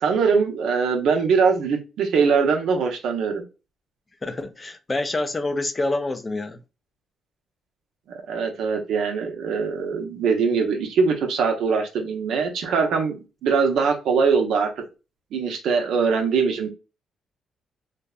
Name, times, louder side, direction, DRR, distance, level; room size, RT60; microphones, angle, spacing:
voice 1, 0.0-3.4 8.3-14.7 15.3-16.7, right 5 dB, 75° right, 0.6 m, -22 dB
voice 2, 4.2-6.6, left 2 dB, 25° left, 0.3 m, -27 dB
2.6 x 2.1 x 2.3 m
cardioid pair, 90°, 0 cm